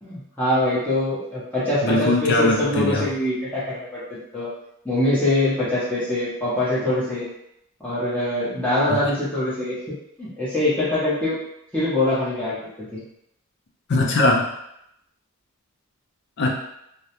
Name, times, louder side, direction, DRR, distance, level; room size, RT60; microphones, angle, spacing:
voice 1, 0.0-4.5 4.8-7.3 7.8-9.7 10.2-11.4 11.7-13.0, left 1 dB, 5° left, -11 dB, 0.7 m, -23 dB
voice 2, 1.8-3.1 13.9-14.5 16.4-16.5, left 2 dB, 50° left, 0 dB, 0.4 m, -20 dB
2.3 x 2.0 x 2.8 m, 0.78 s
head